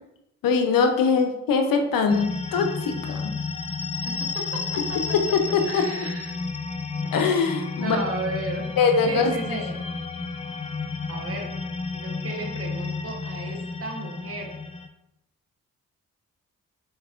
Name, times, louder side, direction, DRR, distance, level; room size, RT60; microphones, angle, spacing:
voice 1, 0.4-3.4 5.1-5.8 7.1-8.0 8.8-9.7, left 5 dB, 70° left, 6 dB, 0.6 m, -22 dB
sound 1, 2.1-14.9, left 4 dB, 20° left, 0.3 m, -32 dB
voice 2, 4.0-5.0 5.6-6.3 7.1-7.3 7.8-8.6 9.0-9.8 11.1-11.5 11.9-14.5, right 2 dB, 40° right, 1 dB, 1.0 m, -34 dB
4.6 x 2.9 x 2.4 m, 0.86 s
supercardioid pair, 45°, 35 cm